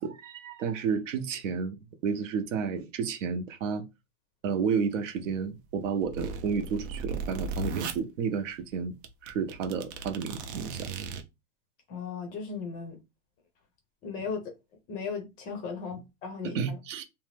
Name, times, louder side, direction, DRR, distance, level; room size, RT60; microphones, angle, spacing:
voice 1, 0.0-1.7 2.0-3.8 4.4-8.9 9.2-10.9 16.4-17.0, right 6 dB, 75° right, 0.7 m, -31 dB
sound 1, 5.7-8.0 8.7-8.8 9.0-11.2, right 4 dB, 45° right, 0.5 m, -36 dB
voice 2, 11.9-13.0 14.0-14.4 14.9-16.8, left 5 dB, 25° left, 0.4 m, -36 dB
2.7 x 2.1 x 3.2 m
supercardioid pair, 150°, 38 cm